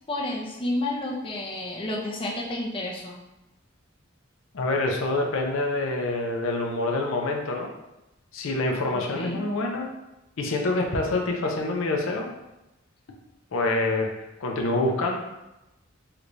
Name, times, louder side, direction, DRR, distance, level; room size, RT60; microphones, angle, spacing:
voice 1, 0.1-3.2 8.9-9.4, left 1 dB, 25° left, -3 dB, 0.5 m, -31 dB
voice 2, 4.5-7.7 8.3-9.9 10.4-12.3 13.5-14.1 14.4-15.2, left 2 dB, 75° left, 1 dB, 0.5 m, -26 dB
3.3 x 3.1 x 2.6 m, 0.96 s
head